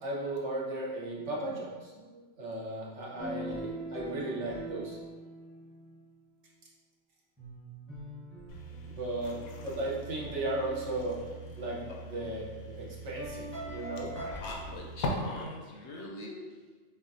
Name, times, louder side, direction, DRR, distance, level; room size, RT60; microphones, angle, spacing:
voice 1, 0.0-5.0 8.9-11.2 11.6-14.1, right 2 dB, 60° right, -4 dB, 1.1 m, -36 dB
sound 1, 3.2-6.0 7.4-11.9 13.2-14.4, right 1 dB, 10° right, 0.8 m, -43 dB
sound 2, 8.5-15.1, left 1 dB, 90° left, 1.1 m, -42 dB
voice 2, 14.4-16.8, left 2 dB, 65° left, -2 dB, 0.8 m, -43 dB
6.6 x 2.4 x 2.6 m, 1.4 s
omnidirectional pair, 1.4 m